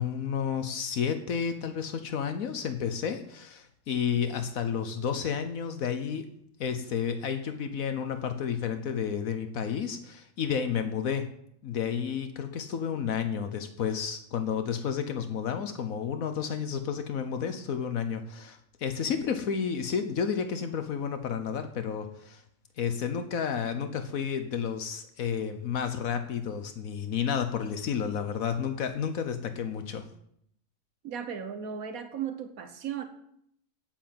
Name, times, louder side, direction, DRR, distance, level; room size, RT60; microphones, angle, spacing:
voice 1, 0.0-6.2 6.6-11.2 11.6-22.4 22.8-30.0, left 7 dB, 80° left, 8 dB, 1.3 m, -31 dB
voice 2, 31.0-33.0, right 8 dB, 85° right, 8 dB, 1.5 m, -36 dB
9.3 x 8.9 x 7.6 m, 0.72 s
omnidirectional pair, 1.4 m